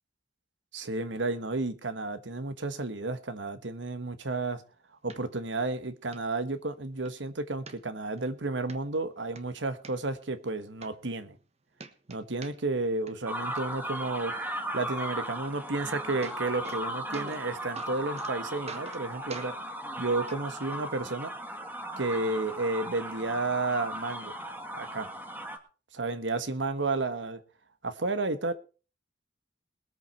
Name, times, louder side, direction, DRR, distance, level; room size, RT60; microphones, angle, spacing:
voice 1, 0.7-4.6 5.0-11.4 12.1-14.3 14.7-19.5 20.0-21.3 22.0-24.3 24.7-25.1 25.9-27.4 27.8-28.5, right 3 dB, 90° right, 1.4 m, -32 dB
sound 1, 5.1-5.2 5.7-5.8 6.1-6.2 6.7-7.1 7.7-8.2 8.7-8.8 9.2-9.9 10.5-10.6 10.8-11.5 11.8-12.8 13.1-13.6 15.7-15.8 16.0-16.8 17.1-17.5 17.8-18.3 18.7-19.0 19.3-19.5 20.3-20.4 21.3-21.4, right 4 dB, 35° right, 1.3 m, -45 dB
sound 2, 13.2-25.6, right 1 dB, 10° right, 1.7 m, -37 dB
21.0 x 8.2 x 4.5 m
head